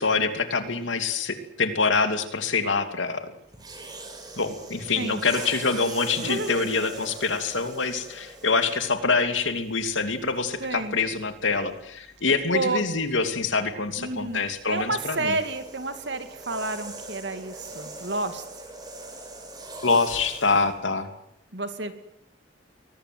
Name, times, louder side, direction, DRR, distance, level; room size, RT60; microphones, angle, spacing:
voice 1, 0.0-3.3 4.4-15.4 19.8-21.1, left 4 dB, 85° left, 8 dB, 2.8 m, -25 dB
sound 1, 3.5-9.1 9.9-10.1 14.0-20.7, right 2 dB, 20° right, 5.3 m, -41 dB
voice 2, 6.2-6.6 10.6-11.0 12.5-12.8 14.0-14.4 14.7-18.4 21.5-21.9, right 2 dB, 65° right, 9 dB, 2.4 m, -30 dB
23.0 x 19.0 x 9.4 m, 0.78 s
head